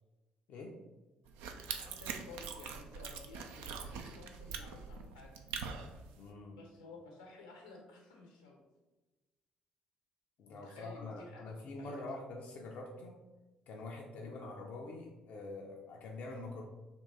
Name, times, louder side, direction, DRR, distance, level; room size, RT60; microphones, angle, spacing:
sound 1, 1.3-6.2, right 6 dB, 65° right, 0.4 m, -43 dB
voice 1, 1.7-5.4 6.5-8.6 10.5-11.9 14.2-14.4, left 3 dB, 80° left, 0 dB, 0.9 m, -54 dB
voice 2, 6.2-6.6 10.4-13.2 13.7-16.6, left 2 dB, 55° left, 0 dB, 0.5 m, -45 dB
3.7 x 2.9 x 4.1 m, 1.1 s
figure-of-eight pair, 50°, 3 cm